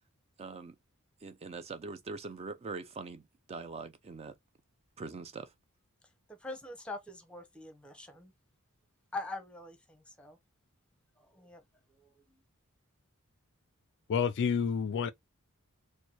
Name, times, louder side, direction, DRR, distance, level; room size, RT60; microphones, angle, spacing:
voice 1, 0.4-0.7 1.2-3.2 3.5-4.3 5.0-5.5, right 4 dB, 30° right, 0.3 m, -42 dB
voice 2, 6.4-8.3 9.1-10.4 11.2-11.6 12.3-12.4, left 2 dB, 5° left, 0.8 m, -43 dB
voice 3, 14.1-15.1, left 6 dB, 55° left, 0.3 m, -29 dB
4.4 x 2.1 x 2.8 m
head